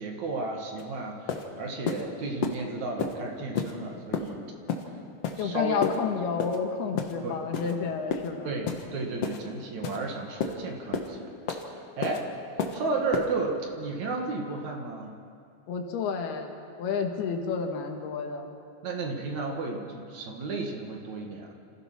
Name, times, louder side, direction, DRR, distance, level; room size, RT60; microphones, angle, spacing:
voice 1, 0.0-4.4 5.4-5.8 7.2-7.3 7.6-7.7 8.4-11.3 11.7-12.2 12.7-15.2 18.8-21.5, right 3 dB, 55° right, 1 dB, 2.5 m, -33 dB
sound 1, 0.8-0.9 1.3-1.4 1.9-2.0 2.4-2.6 3.0-3.1 3.6-3.7 4.1-4.3 4.7-4.8 5.2-5.4 5.8-6.0 6.4-6.6 7.0-7.1 7.5-7.7 8.1-8.3 8.7-8.8 9.2-9.4 9.8-10.0 10.4-10.5 10.9-11.1 11.5-11.6 12.0-12.2 12.6-12.8 13.1-13.3, left 6 dB, 60° left, 1.8 m, -30 dB
voice 2, 5.4-8.5 15.7-18.6, left 5 dB, 90° left, 3 dB, 3.5 m, -30 dB
28.0 x 15.5 x 6.0 m, 2.5 s
omnidirectional pair, 4.4 m